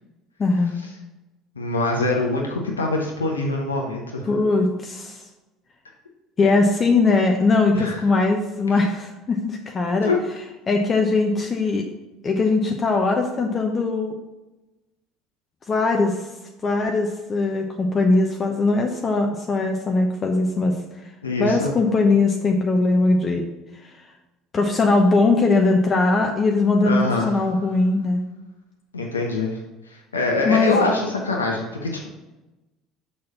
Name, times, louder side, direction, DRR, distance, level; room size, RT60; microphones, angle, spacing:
voice 1, 0.4-0.8 4.3-5.2 6.4-10.1 10.7-11.8 12.2-14.2 15.7-16.3 16.6-20.8 21.4-23.4 23.8-23.9 24.5-27.0 27.3-28.2 30.4-30.7, left 3 dB, 35° left, 2 dB, 0.8 m, -20 dB
voice 2, 1.6-4.3 7.7-8.1 10.0-10.2 21.2-21.7 26.8-27.4 28.9-29.6 29.9-32.1, left 2 dB, 85° left, 0 dB, 0.8 m, -24 dB
6.3 x 4.2 x 5.7 m, 1.0 s
figure-of-eight pair, 65°, 0 cm